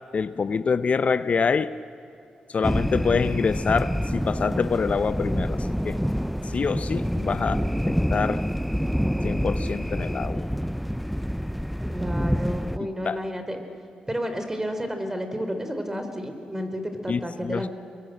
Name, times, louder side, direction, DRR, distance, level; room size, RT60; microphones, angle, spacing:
voice 1, 0.1-1.8 2.5-6.0 6.4-8.4 9.2-10.5 12.8-13.2 17.1-17.7, left 5 dB, 55° left, 13 dB, 0.6 m, -26 dB
sound 1, 2.6-12.8, equal, ahead, 0.5 m, -27 dB
voice 2, 11.9-13.6 14.1-17.7, equal, 15° right, 7 dB, 3.7 m, -31 dB
25.5 x 22.5 x 7.8 m, 2.5 s
cardioid pair, 55°, 3 cm